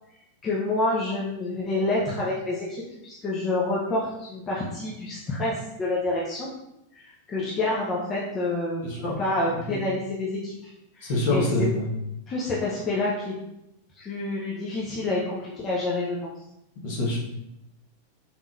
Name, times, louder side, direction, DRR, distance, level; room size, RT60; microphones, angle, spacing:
voice 1, 0.4-6.5 6.9-8.8 9.2-10.7 11.0-11.7 12.3-13.4 14.0-16.3, left 2 dB, 25° left, -5 dB, 0.7 m, -28 dB
voice 2, 8.8-9.1 9.7-9.8 11.1-11.8 16.8-17.2, left 1 dB, 50° left, -4 dB, 1.3 m, -25 dB
4.5 x 3.6 x 2.5 m, 0.86 s
figure-of-eight pair, 90°, 0 cm